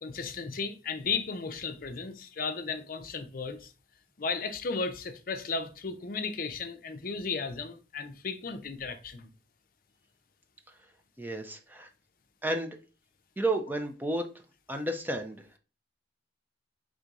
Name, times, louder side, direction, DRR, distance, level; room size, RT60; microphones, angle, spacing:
voice 1, 0.0-3.7 4.2-9.3, left 4 dB, 50° left, 0.6 m, -35 dB
voice 2, 11.2-11.9 12.4-12.8 13.4-14.3 14.7-15.6, right 1 dB, 10° right, 0.5 m, -32 dB
3.7 x 2.7 x 4.6 m
head